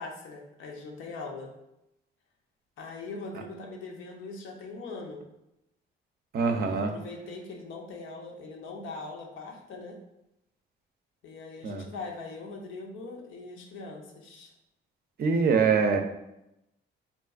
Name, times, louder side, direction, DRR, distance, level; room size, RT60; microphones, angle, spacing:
voice 1, 0.0-1.5 2.8-5.2 6.4-10.0 11.2-14.5, left 3 dB, 85° left, 1 dB, 0.6 m, -41 dB
voice 2, 6.3-6.9 11.6-11.9 15.2-16.0, right 5 dB, 50° right, 5 dB, 0.5 m, -24 dB
3.8 x 2.3 x 2.4 m, 0.86 s
cardioid pair, 90°, 20 cm